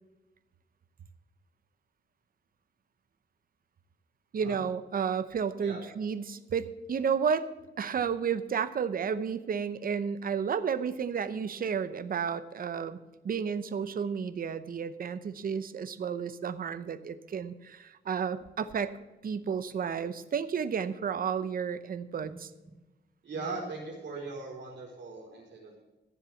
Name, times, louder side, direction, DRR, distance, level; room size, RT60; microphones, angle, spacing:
voice 1, 4.3-7.5 7.8-13.0 13.2-18.9 19.2-22.3, right 6 dB, 50° right, 13 dB, 0.8 m, -32 dB
voice 2, 23.2-25.8, right 3 dB, 75° right, -2 dB, 4.4 m, -39 dB
14.5 x 7.3 x 7.0 m, 1.1 s
wide cardioid pair, 160°, 18 cm